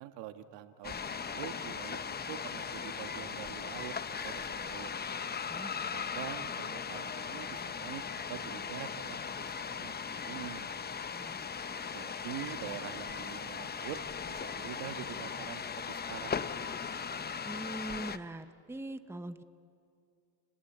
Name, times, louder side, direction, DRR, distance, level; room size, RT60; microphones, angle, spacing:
voice 1, 0.0-3.9 4.2-4.9 5.9-8.0 8.3-10.7 11.9-14.0 14.3-16.4, right 12 dB, 80° right, 8 dB, 1.6 m, -45 dB
sound 1, 0.8-18.2, left 6 dB, 25° left, 0.8 m, -38 dB
voice 2, 5.5-5.9 11.1-11.5 17.4-19.4, right 2 dB, 5° right, 10 dB, 0.9 m, -42 dB
30.0 x 19.5 x 8.9 m, 2.4 s
cardioid pair, 110°, 43 cm